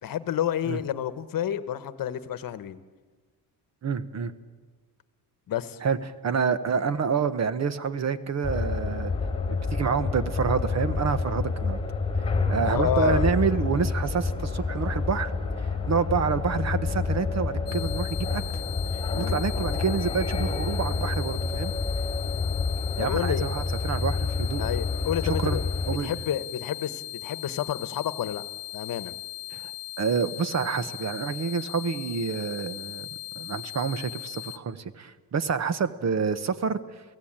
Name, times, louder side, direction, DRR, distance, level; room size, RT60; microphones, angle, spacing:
voice 1, 0.0-2.8 5.5-5.8 12.6-13.3 19.1-19.5 23.0-23.5 24.6-25.6 26.0-28.4 28.7-29.1, left 10 dB, 55° left, 13 dB, 1.2 m, -30 dB
voice 2, 3.8-4.3 5.8-6.0 6.2-9.1 9.5-11.8 12.5-15.3 15.6-18.4 18.9-21.7 23.0-24.6 25.2-25.6 25.9-26.2 29.5-29.7 30.0-33.1 33.3-37.0, right 6 dB, 40° right, 13 dB, 1.1 m, -28 dB
sound 1, 8.4-26.0, left 4 dB, 15° left, 4.6 m, -28 dB
sound 2, 17.7-34.6, left 20 dB, 40° left, 1.8 m, -39 dB
29.0 x 17.5 x 8.9 m, 1.4 s
cardioid pair, 145°, 39 cm